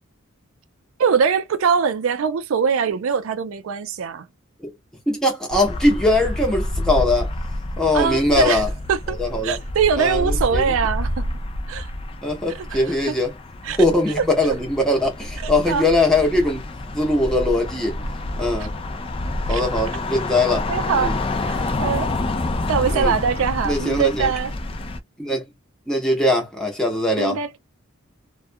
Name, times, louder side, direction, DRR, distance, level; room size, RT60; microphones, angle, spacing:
voice 1, 1.0-4.3 7.9-9.2 9.4-11.2 11.7-11.9 12.6-13.2 13.6-13.8 14.2-14.6 15.4-15.9 19.5-19.6 20.7-21.1 21.8-22.1 22.7-24.5 27.2-27.6, right 6 dB, 75° right, 0.4 m, -22 dB
voice 2, 5.1-7.3 7.8-8.7 9.2-9.6 10.0-10.7 12.2-13.3 13.8-16.6 16.9-18.0 18.4-18.7 19.5-20.7 21.0-21.2 22.9-23.1 23.6-24.3 25.2-25.4 25.9-27.6, left 1 dB, 5° left, 0.7 m, -21 dB
sound 1, 5.5-25.0, left 1 dB, 25° left, 0.3 m, -28 dB
2.3 x 2.2 x 2.5 m
head